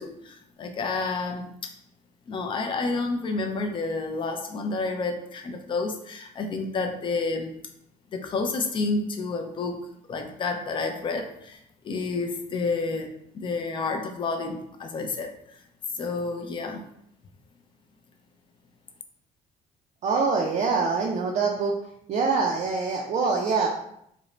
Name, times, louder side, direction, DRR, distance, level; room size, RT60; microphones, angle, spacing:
voice 1, 0.0-1.5 2.3-7.6 8.1-15.6 15.9-16.8, left 3 dB, 30° left, 4 dB, 0.4 m, -30 dB
voice 2, 20.0-21.7 22.1-23.7, right 4 dB, 45° right, 0 dB, 0.4 m, -24 dB
2.5 x 2.0 x 3.0 m, 0.73 s
cardioid pair, 110°, 17 cm